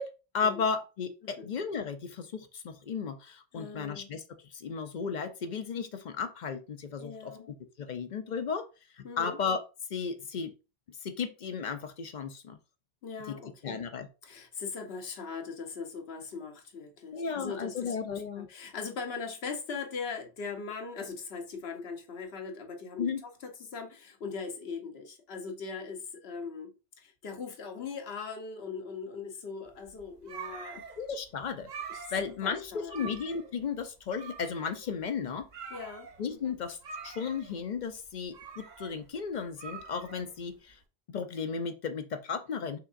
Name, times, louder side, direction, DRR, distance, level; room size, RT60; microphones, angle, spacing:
voice 1, 0.0-8.7 8.9-9.6 9.9-10.5 10.9-12.6 13.3-13.4 13.6-14.1 17.1-18.5 23.0-23.2 31.0-31.7 32.1-35.5 36.2-36.8 37.0-40.8 41.1-42.8, left 6 dB, 55° left, 0.6 m, -34 dB
voice 2, 3.5-4.1 7.0-7.5 9.0-9.4 13.0-13.8 14.2-30.8 31.9-32.1 32.4-33.1 35.7-36.6, left 5 dB, 75° left, 1.1 m, -40 dB
sound 1, 29.7-40.7, right 5 dB, 50° right, 0.7 m, -46 dB
5.6 x 3.5 x 2.4 m
omnidirectional pair, 1.0 m